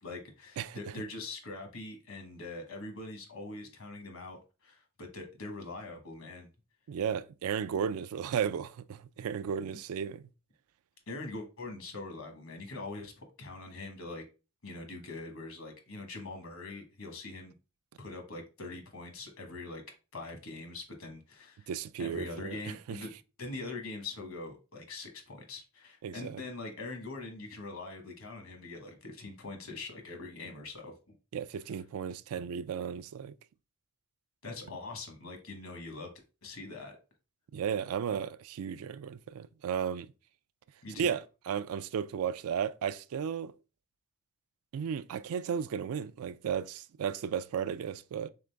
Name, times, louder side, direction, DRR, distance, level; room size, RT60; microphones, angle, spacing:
voice 1, 0.0-6.5 11.1-14.2 14.6-17.5 18.0-19.8 20.1-21.7 22.0-23.1 23.4-31.2 34.4-36.1 36.4-37.0 40.8-41.1, left 3 dB, 70° left, 1.2 m, -43 dB
voice 2, 6.9-10.2 21.7-22.6 22.9-23.0 26.0-26.4 31.3-33.3 37.5-40.1 41.0-43.5 44.7-48.3, right 7 dB, 80° right, 0.3 m, -34 dB
3.8 x 3.8 x 3.3 m
head